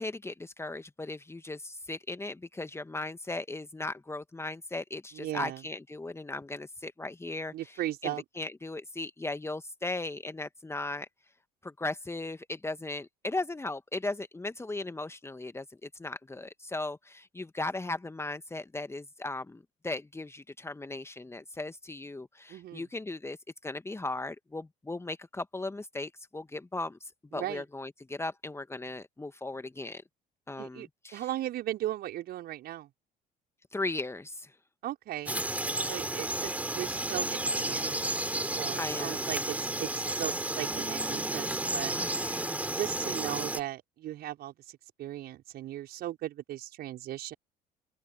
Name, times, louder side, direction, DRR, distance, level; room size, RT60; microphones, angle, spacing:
voice 1, 0.0-11.1 11.6-23.4 23.6-30.0 30.5-31.2 33.7-34.5 38.8-39.3 41.9-42.7, left 2 dB, 10° left, 1.9 m, -37 dB
voice 2, 5.1-5.6 7.5-8.2 22.5-22.9 27.3-27.6 30.6-32.9 34.8-35.4 35.8-38.2 38.6-42.0 42.8-47.3, right 13 dB, 50° right, 5.7 m, -37 dB
Frog, 35.3-43.6, right 1 dB, 5° right, 5.1 m, -32 dB
open air
figure-of-eight pair, 55°, 20 cm